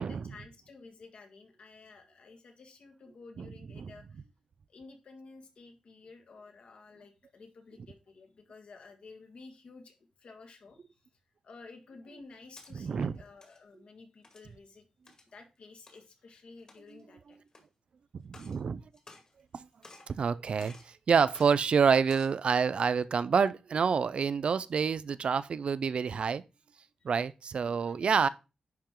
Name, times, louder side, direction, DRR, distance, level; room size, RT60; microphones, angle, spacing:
voice 1, 0.0-4.2 4.7-10.8 11.4-14.8 15.3-17.4 27.0-27.1 27.6-28.2, left 3 dB, 60° left, 1.7 m, -53 dB
sound 1, 12.2-12.7 13.3-13.6 14.2-14.5 15.1-15.3 15.9-16.0 16.6-17.0 17.5-17.6 18.2-18.6 18.9-19.6 19.8-20.2 20.6-20.9 21.3-21.5 22.0-22.4, left 2 dB, 35° left, 2.0 m, -53 dB
voice 2, 12.7-13.2 18.1-18.8 19.5-19.7 20.1-26.4 27.0-28.3, right 6 dB, 55° right, 0.4 m, -28 dB
10.5 x 4.5 x 3.7 m
wide cardioid pair, 180°, 2 cm